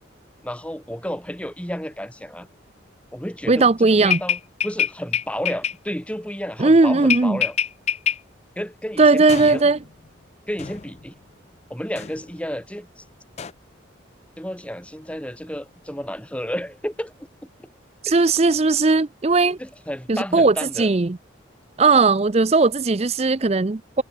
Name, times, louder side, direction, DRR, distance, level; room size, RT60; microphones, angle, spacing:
voice 1, 0.4-2.5 3.1-7.6 8.6-9.7 10.5-11.1 11.7-13.0 14.4-17.3 18.1-18.3 19.6-20.9, equal, 5° left, 4.4 m, -32 dB
voice 2, 3.5-4.2 6.6-7.4 9.0-9.8 18.0-19.6 20.1-21.2 21.8-24.0, right 3 dB, 30° right, 0.5 m, -17 dB
sound 1, 4.1-5.7 7.1-8.2 9.3-10.1 10.6-11.1 12.0-12.3 13.4-13.5, left 8 dB, 35° left, 0.4 m, -25 dB
head